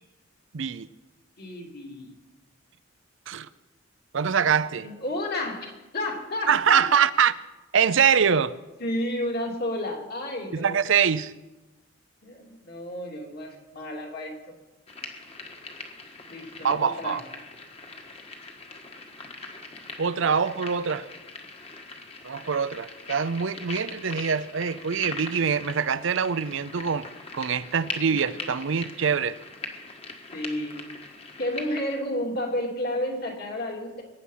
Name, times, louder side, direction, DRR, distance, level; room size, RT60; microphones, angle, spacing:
voice 1, 0.5-0.9 3.3-3.5 4.1-4.9 6.5-7.3 7.7-8.5 10.5-11.3 16.6-17.2 20.0-21.1 22.2-27.1 27.3-29.4, right 7 dB, 65° right, 0.5 m, -24 dB
voice 2, 1.4-2.1 4.8-6.9 8.8-10.8 12.2-14.4 16.3-17.2 28.1-28.2 30.3-30.8 31.4-34.0, left 1 dB, 50° left, 2.9 m, -31 dB
sound 1, 14.9-32.0, left 3 dB, 30° left, 1.6 m, -41 dB
22.5 x 9.8 x 5.7 m
head